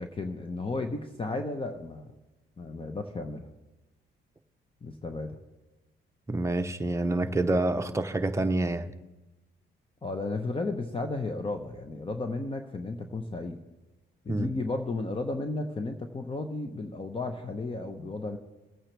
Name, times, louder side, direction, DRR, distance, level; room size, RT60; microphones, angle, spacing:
voice 1, 0.0-2.1 2.6-3.5 4.8-5.4 10.0-13.6 14.2-18.4, left 2 dB, 25° left, 6 dB, 1.0 m, -34 dB
voice 2, 6.3-8.9 14.3-14.5, right 2 dB, 15° right, 6 dB, 0.8 m, -27 dB
22.5 x 8.8 x 3.4 m, 1.1 s
cardioid pair, 90°, 20 cm